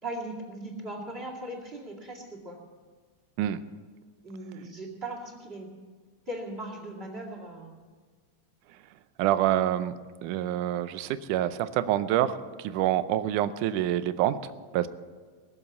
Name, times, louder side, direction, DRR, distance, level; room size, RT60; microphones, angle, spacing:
voice 1, 0.0-2.6 4.2-5.7 6.3-7.8, right 1 dB, 20° right, 1 dB, 2.2 m, -38 dB
voice 2, 9.2-9.9 10.2-14.9, right 12 dB, 80° right, 13 dB, 2.1 m, -27 dB
21.0 x 7.3 x 8.1 m, 1.5 s
omnidirectional pair, 3.6 m